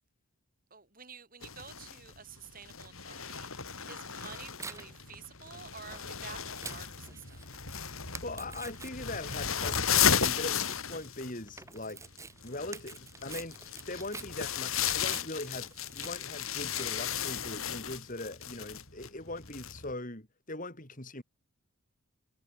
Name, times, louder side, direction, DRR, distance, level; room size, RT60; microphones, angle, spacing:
voice 1, 0.7-3.5 3.9-7.4, right 6 dB, 40° right, 6.7 m, -50 dB
sound 1, 1.4-19.9, left 8 dB, 70° left, 6.5 m, -34 dB
Tearing, 3.9-17.4, right 4 dB, 15° right, 4.5 m, -49 dB
voice 2, 8.2-12.1 12.4-21.2, left 2 dB, 35° left, 3.9 m, -41 dB
head